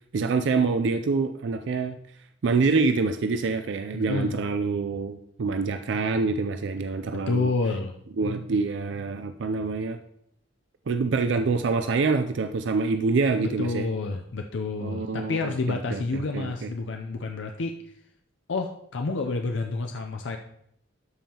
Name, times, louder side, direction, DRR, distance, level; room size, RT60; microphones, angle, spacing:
voice 1, 0.1-2.0 2.4-7.5 8.2-10.0 10.9-13.9 14.8-16.7, right 4 dB, 65° right, 8 dB, 0.4 m, -26 dB
voice 2, 3.9-4.4 7.1-8.0 13.4-17.8 18.5-20.4, left 3 dB, 65° left, 5 dB, 0.5 m, -29 dB
12.5 x 5.5 x 2.9 m, 0.72 s
head